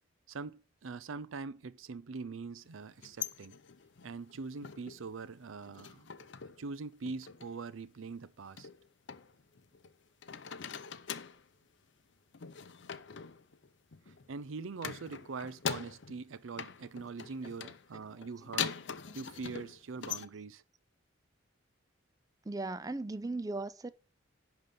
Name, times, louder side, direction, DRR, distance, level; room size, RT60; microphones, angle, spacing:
voice 1, 0.3-3.6 4.0-6.1 6.6-8.7 14.1-18.8 19.1-20.6, right 4 dB, 80° right, 0.5 m, -43 dB
sound 1, 2.9-5.1 5.4-6.7 6.9-7.5 8.6-9.9 10.2-11.5 12.3-14.3 14.7-16.3 16.6-20.3, left 7 dB, 60° left, 0.6 m, -42 dB
voice 2, 22.4-23.9, right 2 dB, 15° right, 0.4 m, -37 dB
11.0 x 3.9 x 6.7 m
head